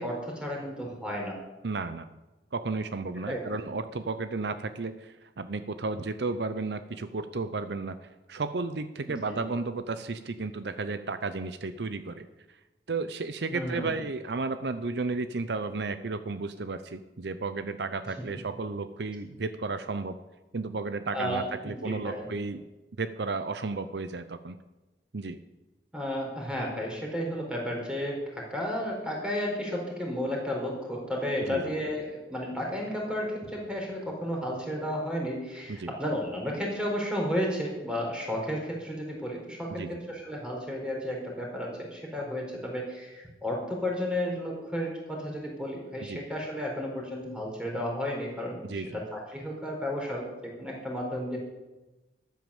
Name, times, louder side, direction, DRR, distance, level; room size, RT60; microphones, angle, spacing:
voice 1, 0.0-1.4 3.2-3.6 9.1-9.4 13.5-13.9 21.1-22.3 25.9-51.4, equal, 5° right, -1 dB, 4.3 m, -33 dB
voice 2, 1.6-2.1 2.5-12.3 12.9-20.2 20.5-22.6 23.0-24.6 25.1-25.4 31.5-31.7 35.7-35.9 39.8-40.0 46.0-46.2 48.6-49.0, right 3 dB, 70° right, 11 dB, 0.7 m, -33 dB
13.5 x 9.4 x 7.2 m, 1.1 s
head